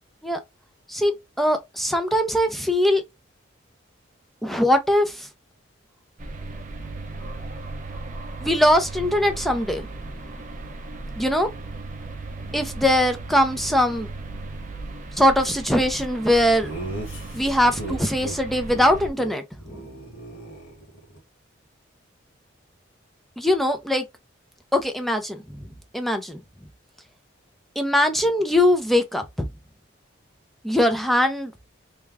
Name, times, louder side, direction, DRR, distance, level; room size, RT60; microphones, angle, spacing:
voice 1, 0.9-3.0 4.4-5.3 8.4-9.9 11.2-11.5 12.5-14.1 15.2-16.7 17.3-19.4 23.4-24.0 24.7-25.4 25.9-26.4 27.8-29.2 30.6-31.5, left 1 dB, ahead, 0.5 m, -21 dB
sound 1, 6.2-19.1, right 3 dB, 40° right, 0.6 m, -36 dB
Laughter, 16.6-18.4 18.7-18.9 19.1-19.3 19.6-21.2, right 2 dB, 75° left, 1.5 m, -37 dB
3.4 x 2.2 x 3.4 m
head